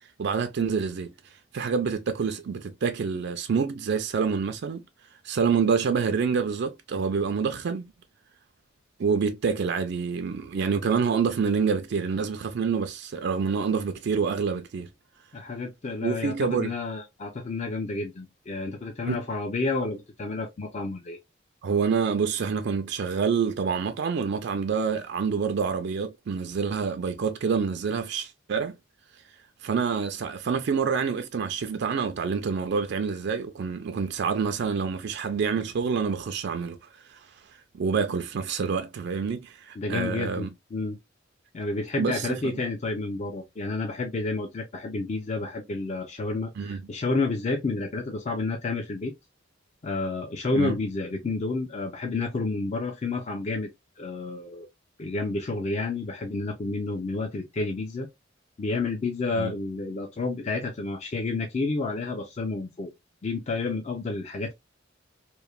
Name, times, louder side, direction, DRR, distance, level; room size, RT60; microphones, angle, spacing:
voice 1, 0.2-1.1 1.5-4.8 5.2-7.8 9.0-14.9 16.0-16.7 19.1-19.2 21.6-28.7 29.6-37.2 37.7-40.5 42.0-42.3 46.6-46.8 50.5-50.7 59.3-59.5, right 5 dB, 60° right, 0.4 m, -27 dB
voice 2, 15.3-21.2 39.8-41.0 41.5-49.1 49.8-53.7 54.0-54.7 55.0-58.1 58.6-62.9 63.2-64.5, left 3 dB, 35° left, 0.4 m, -30 dB
3.0 x 2.1 x 2.2 m
head